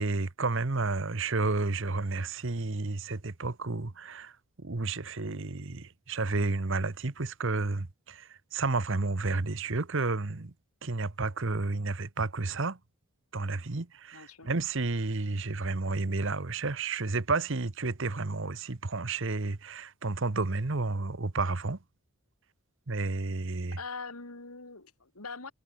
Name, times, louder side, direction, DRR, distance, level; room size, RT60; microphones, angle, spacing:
voice 1, 0.0-4.3 4.6-10.5 10.8-12.8 13.3-21.8 22.9-23.8, right 3 dB, 55° right, 1.1 m, -31 dB
voice 2, 14.1-14.5 23.7-25.5, left 4 dB, 85° left, 3.2 m, -42 dB
head